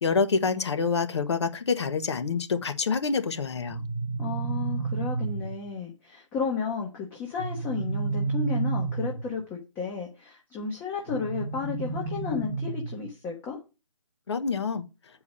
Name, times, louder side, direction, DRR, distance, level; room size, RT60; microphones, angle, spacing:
voice 1, 0.0-3.8 14.3-14.8, left 5 dB, 55° left, 1.3 m, -27 dB
sound 1, 3.7-5.7 7.4-9.4 11.1-13.1, right 4 dB, 15° right, 0.9 m, -31 dB
voice 2, 4.2-13.6, left 5 dB, 10° left, 0.9 m, -33 dB
8.6 x 4.7 x 5.5 m
hypercardioid pair, 155°, 17 cm